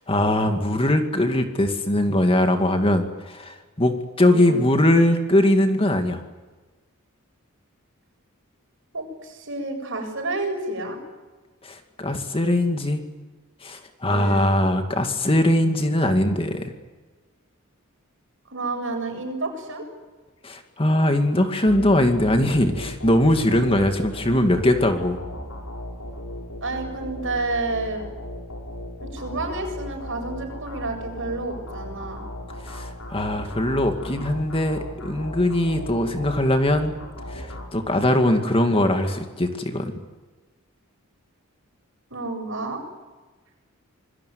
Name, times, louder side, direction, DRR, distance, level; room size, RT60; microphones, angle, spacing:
voice 1, 0.1-6.2 11.6-13.0 13.6-16.7 20.4-25.2 32.6-36.9 37.3-39.9, left 1 dB, 25° left, 5 dB, 2.4 m, -21 dB
voice 2, 4.2-4.7 8.9-11.0 14.1-14.6 18.5-19.9 26.6-28.0 29.0-32.2 42.1-42.8, right 2 dB, 60° right, 4 dB, 7.7 m, -30 dB
sound 1, 21.7-38.3, left 1 dB, 90° left, 7.2 m, -37 dB
27.0 x 21.5 x 9.6 m, 1.3 s
head